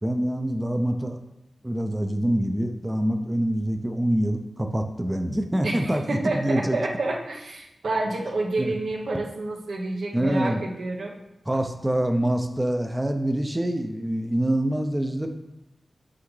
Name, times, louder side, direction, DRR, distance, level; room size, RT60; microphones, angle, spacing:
voice 1, 0.0-1.2 1.6-6.8 8.6-8.7 10.1-10.6 11.5-15.3, right 1 dB, 10° right, 5 dB, 0.5 m, -25 dB
voice 2, 5.6-11.1, right 2 dB, 85° right, -1 dB, 1.0 m, -29 dB
6.1 x 5.7 x 3.2 m, 0.92 s
wide cardioid pair, 110°, 0 cm